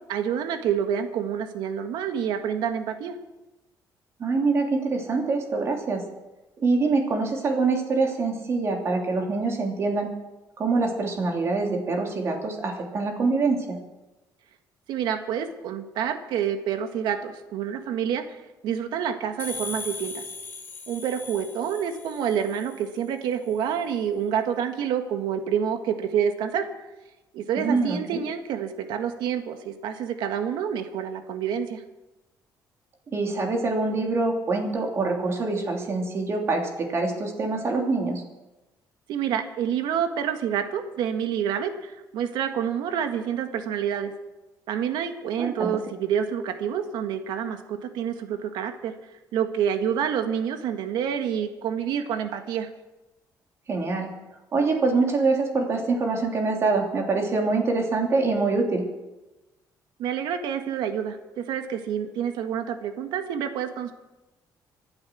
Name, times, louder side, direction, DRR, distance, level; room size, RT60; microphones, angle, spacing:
voice 1, 0.0-3.1 14.9-18.2 18.6-20.2 20.9-26.7 27.3-31.8 39.1-44.1 44.7-48.9 49.3-52.7 60.0-63.9, right 8 dB, 90° right, 7 dB, 1.7 m, -28 dB
voice 2, 4.2-6.0 6.6-10.1 10.6-13.8 27.5-28.2 33.1-38.2 45.4-45.8 53.7-54.1 54.5-58.9, right 3 dB, 35° right, 1 dB, 3.1 m, -25 dB
sound 1, 19.4-23.0, left 3 dB, 30° left, 2.9 m, -38 dB
25.0 x 8.8 x 6.3 m, 1.1 s
cardioid pair, 155°, 7 cm